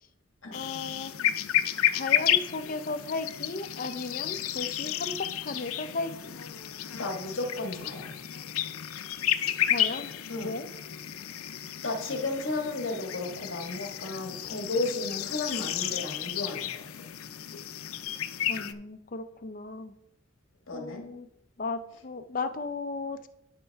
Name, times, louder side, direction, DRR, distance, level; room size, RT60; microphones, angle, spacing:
sound 1, 0.5-18.7, left 11 dB, 90° left, 0.5 m, -32 dB
voice 1, 0.5-1.1 1.9-6.3 9.7-10.1 10.4-10.7 18.5-19.9 20.7-21.3 21.6-23.3, left 3 dB, 40° left, 9 dB, 0.5 m, -35 dB
voice 2, 6.9-8.2 10.3-10.5 11.8-17.1 20.7-21.1, left 2 dB, 70° left, 2 dB, 1.5 m, -33 dB
12.0 x 5.4 x 3.5 m, 0.81 s
head